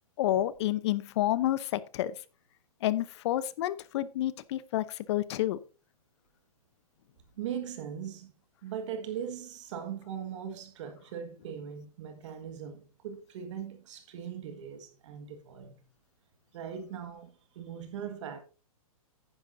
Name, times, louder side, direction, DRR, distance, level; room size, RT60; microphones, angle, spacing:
voice 1, 0.2-2.1 2.8-5.6, left 13 dB, 50° left, 0.8 m, -29 dB
voice 2, 7.4-8.3 8.6-15.8 16.5-18.4, right 8 dB, 55° right, 1.7 m, -40 dB
11.0 x 9.8 x 2.6 m
hypercardioid pair, 130°, 19 cm